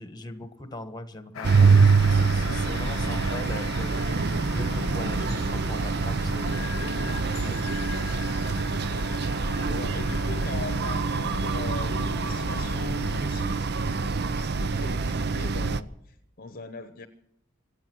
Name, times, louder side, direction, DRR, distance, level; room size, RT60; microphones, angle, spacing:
voice 1, 0.0-6.7 7.4-7.6, left 1 dB, 20° left, 10 dB, 1.4 m, -40 dB
sound 1, 1.3-13.2, left 5 dB, 70° left, 0.6 m, -38 dB
sound 2, 1.4-15.8, right 4 dB, 50° right, 0.7 m, -25 dB
voice 2, 9.7-17.1, left 3 dB, 45° left, 10 dB, 0.9 m, -41 dB
25.5 x 8.8 x 6.2 m, 0.72 s
head